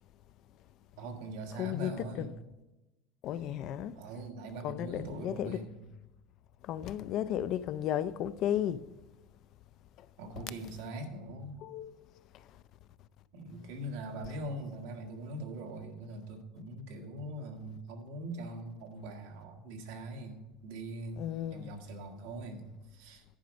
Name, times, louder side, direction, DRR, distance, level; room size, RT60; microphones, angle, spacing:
voice 1, 1.0-2.3 3.9-5.8 10.2-11.6 13.3-21.2 21.5-23.2, right 1 dB, 75° right, 1.5 m, -42 dB
voice 2, 1.5-2.3 3.2-4.0 4.6-5.6 6.6-8.8 10.4-10.5 11.6-11.9 14.2-14.3 21.2-21.7, left 11 dB, 45° left, 0.4 m, -34 dB
10.5 x 5.2 x 6.1 m
cardioid pair, 150°, 0 cm